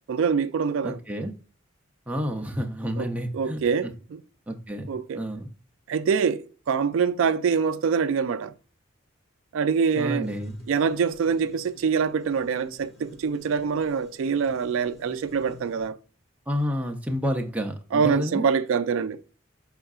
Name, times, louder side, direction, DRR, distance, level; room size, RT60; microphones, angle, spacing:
voice 1, 0.1-1.0 3.0-3.1 3.3-4.2 4.9-5.2 5.9-8.5 9.5-10.3 10.7-16.0 17.9-19.2, right 6 dB, 75° right, 0.3 m, -25 dB
voice 2, 0.8-1.3 2.1-3.9 4.5-5.5 10.0-10.6 16.5-18.5, equal, 5° right, 0.5 m, -30 dB
sound 1, 10.2-15.9, left 1 dB, 30° left, 1.3 m, -51 dB
5.6 x 3.6 x 2.4 m
head